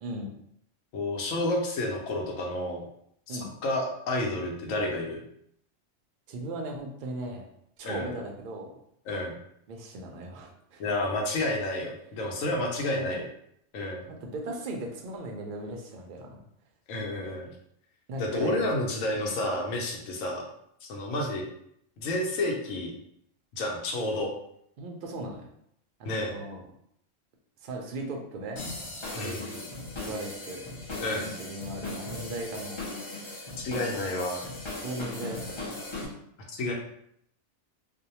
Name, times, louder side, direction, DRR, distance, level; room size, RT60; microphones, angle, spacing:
voice 1, 0.0-0.3 3.3-3.5 6.3-7.5 7.8-8.7 9.7-10.8 12.9-13.2 14.1-16.4 18.1-18.7 19.1-19.3 24.8-25.5 26.0-26.6 27.6-28.6 29.2-29.7 30.0-30.7 31.1-32.8 33.1-34.1 34.8-35.7, right 1 dB, 70° right, 2 dB, 0.4 m, -38 dB
voice 2, 0.9-2.8 3.3-5.2 7.8-8.1 9.1-9.3 10.8-13.3 13.7-14.0 16.9-17.5 18.2-20.4 20.8-21.4 22.0-22.9 23.5-24.3 26.0-26.4 29.1-29.4 31.0-31.3 33.6-34.4 36.5-36.7, left 1 dB, 85° left, 0 dB, 1.0 m, -30 dB
sound 1, 28.6-36.1, left 2 dB, 40° left, 0.4 m, -38 dB
2.6 x 2.0 x 2.8 m, 0.72 s
omnidirectional pair, 1.3 m